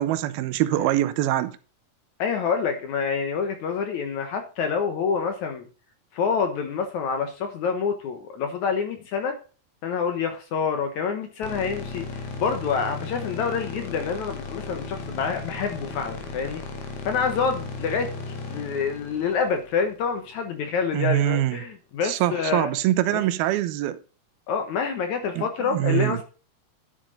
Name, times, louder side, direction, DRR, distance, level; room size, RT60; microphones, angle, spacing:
voice 1, 0.0-1.6 20.9-21.6 22.0-24.0 25.4-26.2, right 13 dB, 80° right, 2.5 m, -24 dB
voice 2, 2.2-5.6 6.1-9.4 9.8-12.1 12.4-16.6 17.0-18.1 18.5-22.7 23.1-23.2 24.5-26.2, left 6 dB, 65° left, 2.1 m, -27 dB
sound 1, 11.4-20.6, left 4 dB, 85° left, 3.9 m, -36 dB
10.5 x 7.3 x 3.8 m
omnidirectional pair, 4.4 m